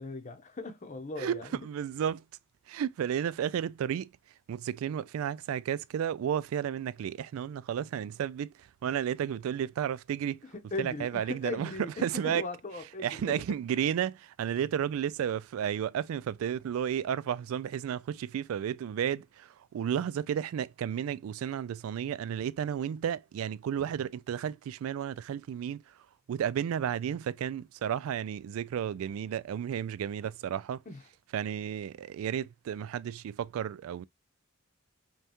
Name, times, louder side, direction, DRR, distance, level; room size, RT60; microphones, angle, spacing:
voice 1, 0.0-1.6 10.5-13.4 30.9-31.0, left 3 dB, 35° left, 0.8 m, -39 dB
voice 2, 1.2-2.2 2.7-4.1 4.5-10.4 10.8-11.7 12.0-12.4 13.0-25.8 26.3-30.8 31.3-34.1, right 9 dB, 90° right, 0.3 m, -32 dB
5.3 x 2.3 x 2.9 m
head